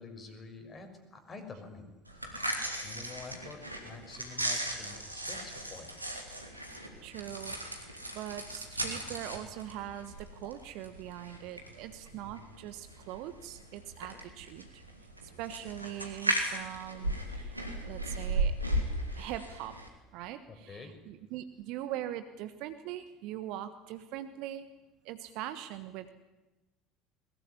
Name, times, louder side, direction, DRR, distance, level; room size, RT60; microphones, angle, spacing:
voice 1, 0.0-1.9 2.8-5.9 12.1-12.4 20.5-20.9, left 4 dB, 25° left, 5 dB, 6.7 m, -48 dB
sound 1, 2.1-19.9, right 1 dB, 90° right, 3.0 m, -37 dB
voice 2, 7.0-14.8 15.2-18.6 19.1-19.8 20.1-24.7 25.0-26.1, right 12 dB, 55° right, 11 dB, 1.3 m, -42 dB
21.5 x 21.0 x 9.9 m, 1.1 s
figure-of-eight pair, 65°, 0 cm